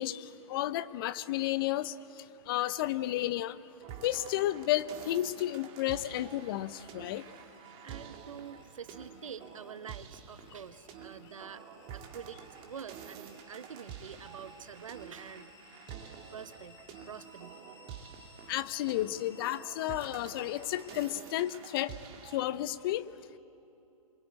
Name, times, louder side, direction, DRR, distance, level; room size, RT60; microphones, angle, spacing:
voice 1, 0.0-1.9 2.5-3.6 4.0-7.2 18.5-21.9 22.2-23.1, left 14 dB, 40° left, 14 dB, 0.8 m, -32 dB
sound 1, 3.8-22.5, right 8 dB, 30° right, 2.1 m, -49 dB
sound 2, 6.7-21.6, left 5 dB, 15° left, 3.5 m, -60 dB
voice 2, 7.8-15.5 16.3-16.8 17.1-17.6 17.9-18.0, right 7 dB, 65° right, 12 dB, 1.2 m, -47 dB
28.0 x 23.5 x 8.6 m, 2.8 s
figure-of-eight pair, 115°, 18 cm